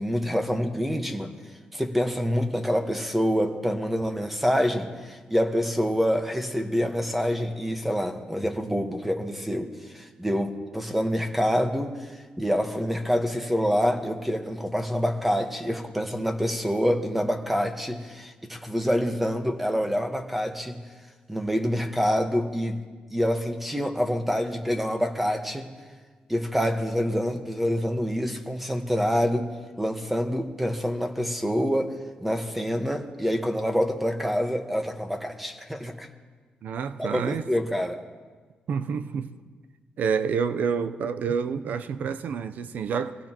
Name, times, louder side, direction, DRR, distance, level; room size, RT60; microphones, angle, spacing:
voice 1, 0.0-1.3 1.7-11.9 12.4-20.8 21.3-22.8 23.1-25.7 26.3-29.5 29.8-31.9 32.2-36.1 37.0-38.0, equal, 5° right, 1.3 m, -26 dB
voice 2, 36.6-37.4 38.7-39.3 40.0-43.2, right 6 dB, 70° right, 0.7 m, -28 dB
23.5 x 16.0 x 3.0 m
cardioid pair, 90°, 3 cm